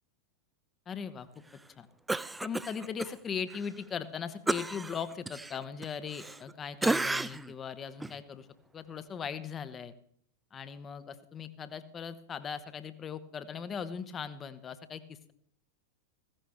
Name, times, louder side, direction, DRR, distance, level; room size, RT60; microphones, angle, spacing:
voice 1, 0.9-1.3 1.8-1.9 2.4-8.5 8.7-9.9 10.5-15.3, left 7 dB, 25° left, 13 dB, 0.9 m, -39 dB
Cough, 2.1-3.1 3.5-3.7 4.5-6.5 6.8-7.5 8.0-8.2, right 2 dB, 10° right, 0.4 m, -32 dB
15.5 x 15.5 x 3.5 m, 0.66 s
figure-of-eight pair, 90°, 0 cm